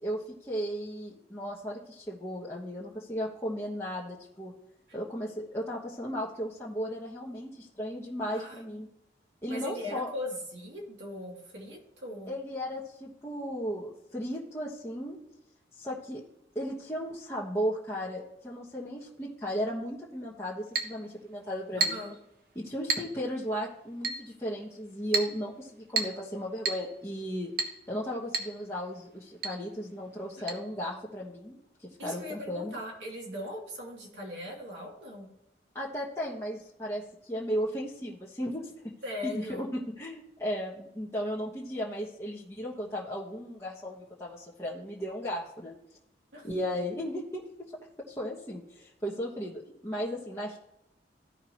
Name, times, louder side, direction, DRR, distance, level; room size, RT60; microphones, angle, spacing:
voice 1, 0.0-4.5 4.9-8.9 9.4-10.1 12.3-15.2 15.8-16.2 16.5-22.0 22.5-27.5 27.9-32.8 35.7-38.7 39.2-45.7 46.4-47.7 48.1-50.6, equal, 15° left, -6 dB, 1.2 m, -35 dB
voice 2, 9.5-12.3 21.8-22.1 32.0-35.3 39.0-39.7 46.3-46.5, left 1 dB, 80° right, -3 dB, 2.9 m, -39 dB
Chink clink, 20.7-21.0 21.8-22.1 22.9-23.1 24.0-24.3 25.1-25.4 26.0-26.2 26.6-26.9 27.6-27.8 28.3-28.5 28.8-28.9 29.4-29.6 30.5-30.6, right 4 dB, 55° right, 1.1 m, -30 dB
15.0 x 5.7 x 3.0 m, 0.84 s
head